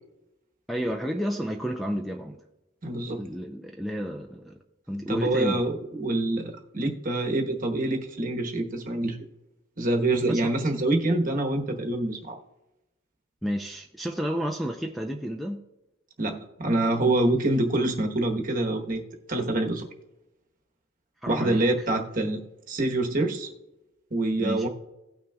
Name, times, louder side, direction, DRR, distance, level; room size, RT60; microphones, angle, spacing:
voice 1, 0.7-2.4 3.2-4.6 4.9-5.6 10.3-10.5 13.4-15.6 21.2-21.9 24.4-24.7, equal, ahead, 0.4 m, -31 dB
voice 2, 2.8-3.2 5.1-9.2 9.8-12.4 16.2-19.0 19.3-19.9 21.3-22.4 22.7-23.5 24.1-24.7, right 2 dB, 40° right, 1.1 m, -26 dB
17.5 x 6.1 x 2.3 m
head